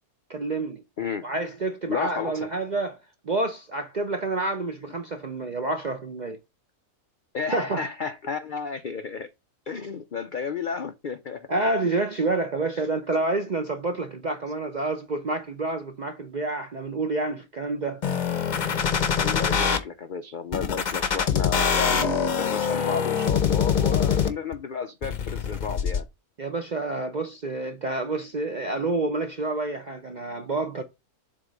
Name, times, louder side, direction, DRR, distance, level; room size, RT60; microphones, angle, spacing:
voice 1, 0.3-0.8 1.2-3.0 3.2-6.4 7.5-7.8 11.5-18.0 26.4-30.8, right 2 dB, 55° right, 0.5 m, -28 dB
voice 2, 1.9-2.5 7.3-9.3 9.7-11.5 12.8-12.9 19.2-26.1, left 6 dB, 75° left, 0.4 m, -32 dB
sound 1, 18.0-19.8 20.5-24.5 25.0-26.0, left 7 dB, 40° left, 0.7 m, -24 dB
7.3 x 3.1 x 5.0 m
omnidirectional pair, 1.6 m